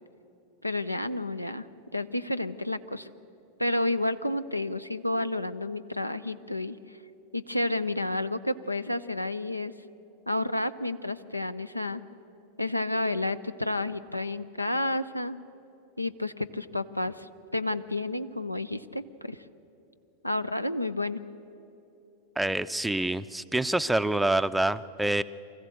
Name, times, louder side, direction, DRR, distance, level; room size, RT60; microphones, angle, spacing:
voice 1, 0.6-1.7 1.9-3.1 3.6-6.8 7.3-9.7 10.3-12.0 12.6-15.4 16.0-19.4 20.2-21.2, left 2 dB, 85° left, 15 dB, 0.5 m, -30 dB
voice 2, 22.4-25.2, right 1 dB, 5° right, 12 dB, 0.5 m, -26 dB
24.0 x 15.0 x 8.2 m, 2.8 s
figure-of-eight pair, 90°, 0 cm